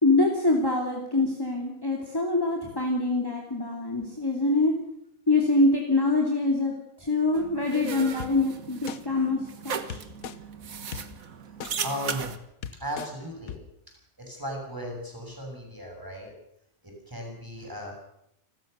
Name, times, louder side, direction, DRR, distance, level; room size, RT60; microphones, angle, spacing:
voice 1, 0.0-4.7 5.3-6.7 7.0-9.4 9.6-10.0, left 2 dB, 15° left, 0 dB, 2.8 m, -24 dB
sound 1, 7.3-12.4, right 6 dB, 75° right, 1.8 m, -37 dB
sound 2, 8.2-8.3 8.9-9.0 9.9-10.4 10.9-11.0 11.6-11.7 12.3-12.4 12.6-13.1 13.5-13.6, left 8 dB, 85° left, 1.5 m, -36 dB
voice 2, 11.8-12.4 12.8-13.6 14.2-16.3 16.8-17.9, equal, 15° right, 1 dB, 7.3 m, -36 dB
29.5 x 13.0 x 6.8 m, 0.76 s
omnidirectional pair, 1.5 m